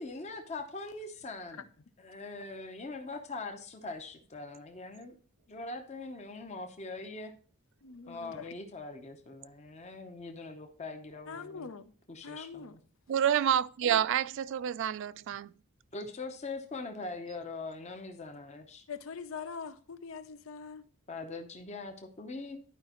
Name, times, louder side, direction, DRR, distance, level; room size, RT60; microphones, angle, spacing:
voice 1, 0.0-1.7 2.0-5.1 5.5-7.3 8.1-11.7 12.1-12.8 15.9-18.8 21.1-22.6, left 3 dB, 30° left, 0.8 m, -42 dB
voice 2, 7.8-8.5 11.3-11.9 12.2-12.8 18.9-20.8, left 5 dB, 65° left, 0.6 m, -43 dB
voice 3, 13.1-15.5, right 9 dB, 60° right, 0.3 m, -28 dB
11.0 x 5.0 x 2.9 m
head